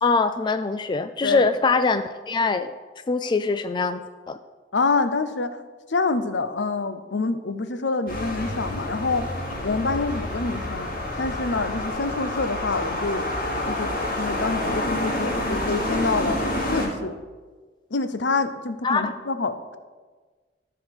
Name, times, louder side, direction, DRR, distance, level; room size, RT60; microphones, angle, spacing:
voice 1, 0.0-2.7 3.1-4.4 18.8-19.1, left 4 dB, 25° left, 10 dB, 0.3 m, -23 dB
voice 2, 4.7-5.6 5.9-13.3 13.7-13.9 14.2-16.4 16.7-17.2 17.9-19.8, left 3 dB, 70° left, 10 dB, 0.7 m, -26 dB
sound 1, 8.1-16.9, left 1 dB, 50° left, 2.6 m, -28 dB
13.5 x 4.8 x 6.4 m, 1.4 s
head